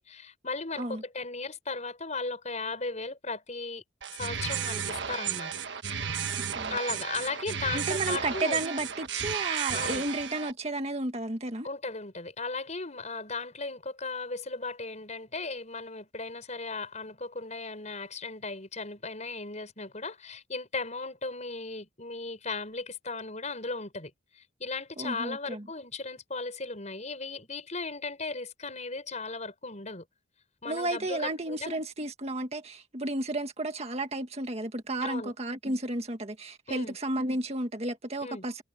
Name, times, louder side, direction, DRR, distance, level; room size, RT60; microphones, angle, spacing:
voice 1, 0.0-3.8 4.1-5.5 6.7-8.6 9.7-10.0 11.6-24.1 24.4-30.0 30.6-31.8 35.0-35.3 36.7-37.0 38.2-38.4, left 3 dB, 40° left, 6.4 m, -36 dB
sound 1, 4.0-10.5, right 7 dB, 70° right, 1.4 m, -33 dB
voice 2, 6.3-6.7 7.7-11.7 25.0-25.6 30.7-38.6, right 2 dB, 35° right, 1.9 m, -33 dB
head